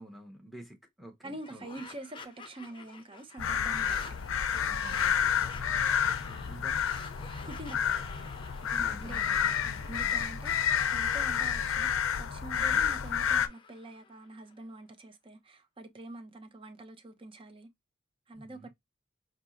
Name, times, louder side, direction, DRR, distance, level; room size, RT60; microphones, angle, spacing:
voice 1, 0.0-1.6 4.5-6.8 8.8-10.5 12.5-12.8 18.3-18.7, right 1 dB, ahead, 1.0 m, -50 dB
voice 2, 1.2-4.0 7.4-8.0 8.6-9.4 9.8-11.9 12.2-17.7 18.3-18.7, right 2 dB, 25° right, 0.7 m, -45 dB
sound 1, 1.3-14.5, left 4 dB, 25° left, 0.6 m, -48 dB
sound 2, 3.4-13.5, left 8 dB, 85° left, 0.5 m, -30 dB
4.5 x 2.8 x 2.5 m
head